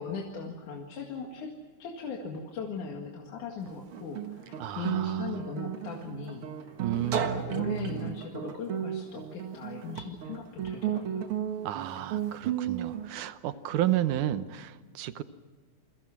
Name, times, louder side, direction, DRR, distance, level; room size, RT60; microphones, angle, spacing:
voice 1, 0.0-1.5 1.8-11.3, left 5 dB, 65° left, 1 dB, 3.4 m, -39 dB
Guitar, 3.7-13.1, right 10 dB, 50° right, 1.8 m, -34 dB
voice 2, 4.6-5.4 6.8-8.1 11.6-15.2, right 12 dB, 75° right, 12 dB, 2.4 m, -32 dB
29.5 x 23.5 x 6.1 m, 1.4 s
omnidirectional pair, 3.8 m